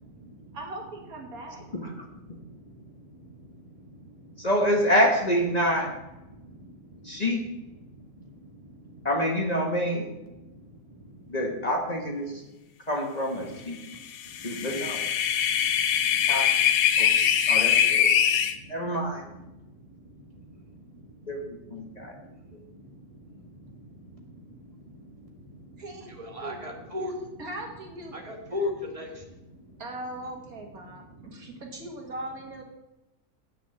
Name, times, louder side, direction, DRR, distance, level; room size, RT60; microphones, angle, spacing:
voice 1, 0.0-0.6 1.3-4.5 6.2-9.1 9.8-9.9 10.3-11.7 12.3-12.6 13.4-13.6 13.9-27.5 28.1-29.8 30.7-31.6, left 2 dB, 25° right, 1 dB, 1.8 m, -43 dB
voice 2, 0.5-1.6 25.8-26.1 26.4-26.6 27.4-28.1 29.8-32.6, right 1 dB, 75° right, 1 dB, 2.4 m, -39 dB
voice 3, 4.4-5.9 7.0-7.4 9.0-10.1 11.3-12.3 12.9-13.8 14.4-15.0 16.3-16.5 17.0-17.1 17.5-18.1 18.7-19.2 21.3-22.2, equal, 30° left, 1 dB, 1.4 m, -26 dB
sound 1, 14.2-18.5, left 9 dB, 75° left, 1.2 m, -22 dB
8.0 x 6.7 x 7.9 m, 0.96 s
omnidirectional pair, 1.5 m